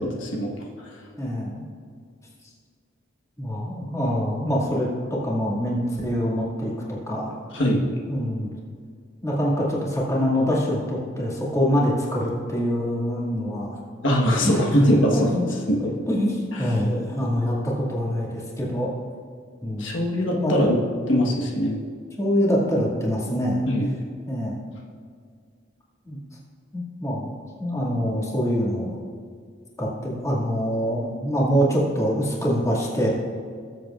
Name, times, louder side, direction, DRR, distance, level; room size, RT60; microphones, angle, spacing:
voice 1, 0.2-0.5 7.5-7.9 14.0-15.2 15.7-15.9 19.8-20.8 21.1-21.8 23.7-23.9, equal, 75° left, -2 dB, 1.4 m, -21 dB
voice 2, 1.2-1.6 3.4-6.7 7.1-7.4 8.1-8.5 9.2-13.8 14.4-15.4 16.1-18.9 19.6-19.9 20.4-20.7 22.2-23.6 24.3-24.6 26.1-26.2 26.7-27.3 27.6-29.0 29.8-33.1, equal, 15° left, -5 dB, 2.1 m, -25 dB
19.5 x 7.8 x 2.5 m, 2.1 s
head